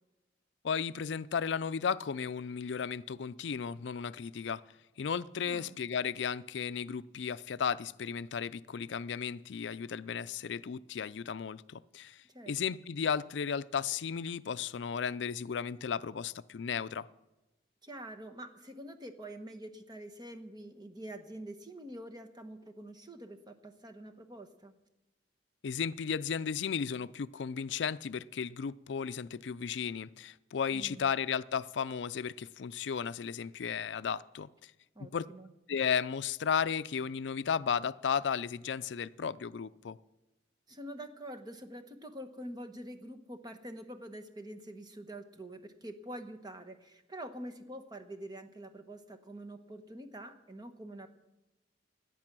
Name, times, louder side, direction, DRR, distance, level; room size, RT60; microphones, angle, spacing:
voice 1, 0.6-4.6 5.0-17.1 25.6-34.7 35.1-35.3 35.7-40.0, left 7 dB, 70° left, 0.4 m, -34 dB
voice 2, 5.4-5.8 12.3-12.8 17.8-24.7 30.7-31.1 34.9-35.5 40.7-51.1, right 1 dB, 20° right, 1.1 m, -46 dB
17.5 x 11.0 x 6.1 m
head